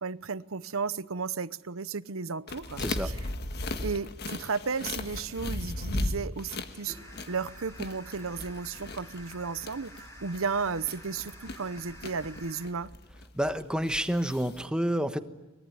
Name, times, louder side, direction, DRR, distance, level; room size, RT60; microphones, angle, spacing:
voice 1, 0.0-3.2 3.8-7.0 7.3-12.9, right 5 dB, 75° right, 0.9 m, -34 dB
sound 1, 2.5-14.7, left 2 dB, 50° left, 1.7 m, -37 dB
sound 2, 6.9-12.7, equal, 15° left, 5.9 m, -50 dB
voice 2, 13.3-15.2, equal, 5° right, 1.2 m, -29 dB
24.0 x 21.5 x 9.5 m
head